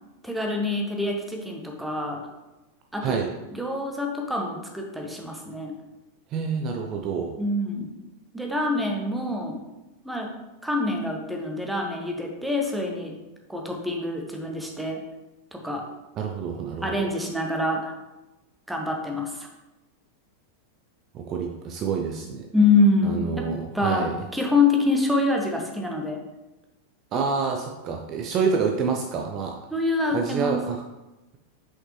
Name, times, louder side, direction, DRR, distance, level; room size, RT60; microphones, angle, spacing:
voice 1, 0.2-2.2 2.9-3.2 3.5-5.7 7.4-8.0 8.3-9.6 10.0-10.3 10.6-13.2 13.5-15.0 15.5-15.8 16.8-17.9 18.7-19.5 22.5-23.5 23.7-26.2 29.7-30.6, left 2 dB, 5° right, 1 dB, 1.0 m, -25 dB
voice 2, 6.3-7.3 16.2-17.1 21.1-22.5 23.0-24.1 27.1-29.6 30.1-30.8, right 5 dB, 35° right, 2 dB, 0.5 m, -27 dB
5.8 x 5.2 x 3.1 m, 1.0 s
figure-of-eight pair, 90°, 0 cm